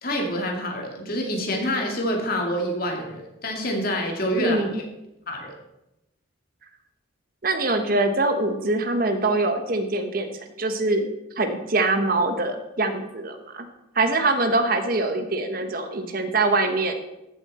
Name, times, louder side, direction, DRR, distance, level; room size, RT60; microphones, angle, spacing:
voice 1, 0.0-4.8 5.3-5.5, equal, 45° left, 1 dB, 2.2 m, -27 dB
voice 2, 4.4-4.7 7.4-11.1 11.4-13.7 13.9-16.9, right 2 dB, 45° right, 7 dB, 1.0 m, -23 dB
14.5 x 7.8 x 4.2 m, 0.91 s
head